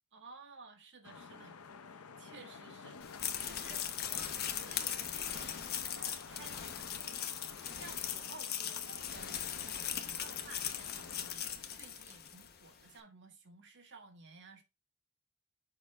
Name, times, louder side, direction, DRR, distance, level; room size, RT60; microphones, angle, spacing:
voice 1, 0.1-14.6, right 4 dB, 55° right, 1.6 m, -55 dB
sound 1, 1.0-11.3, left 5 dB, 80° left, 0.7 m, -51 dB
sound 2, 3.0-12.5, left 9 dB, 45° left, 0.9 m, -39 dB
6.6 x 4.9 x 3.4 m
head